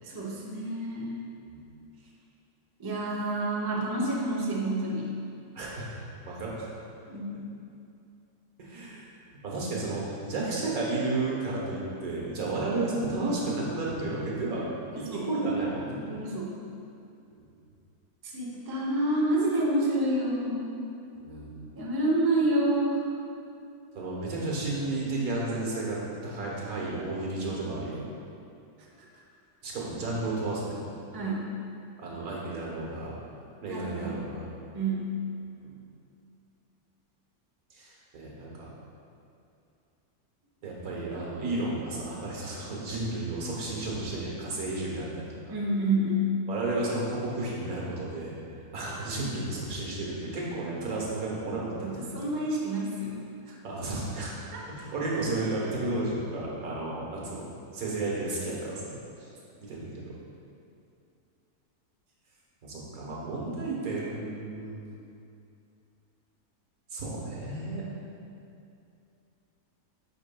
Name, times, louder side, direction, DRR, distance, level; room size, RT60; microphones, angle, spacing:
voice 1, 0.0-1.1 2.8-5.0 7.1-7.4 14.9-15.3 15.9-16.6 18.2-20.6 21.8-23.0 31.1-31.5 33.7-34.2 34.7-35.1 45.5-46.4 51.8-53.1 53.5-53.6 54.5-54.6, right 1 dB, 25° right, -3 dB, 0.5 m, -28 dB
voice 2, 5.5-5.9 6.2-6.7 8.6-16.0 17.3-17.4 21.2-21.5 23.9-28.0 29.6-30.8 32.0-33.2 33.6-34.4 35.6-35.7 37.7-38.7 40.6-45.5 46.5-48.4 48.7-52.1 53.6-54.3 54.7-57.5 57.7-59.3 59.6-60.1 62.6-64.9 66.9-67.8, right 2 dB, 65° right, -4 dB, 1.5 m, -32 dB
8.4 x 5.3 x 2.2 m, 2.6 s
omnidirectional pair, 1.7 m